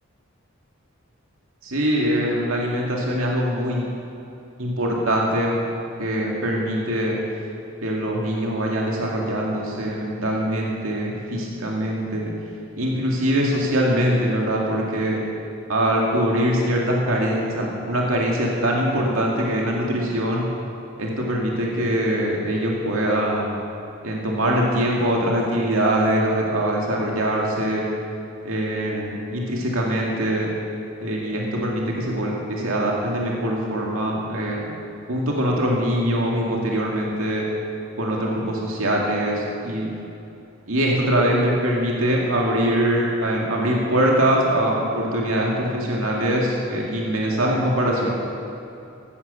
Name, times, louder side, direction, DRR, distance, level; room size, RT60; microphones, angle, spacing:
voice 1, 1.6-3.9 4.6-5.5 6.0-7.2 7.8-12.3 12.8-15.2 15.7-20.4 21.0-23.6 24.0-27.9 28.4-30.5 31.0-34.7 35.1-37.5 38.0-39.9 40.7-48.1, equal, 85° right, -2 dB, 2.2 m, -23 dB
15.5 x 12.5 x 6.9 m, 2.8 s
head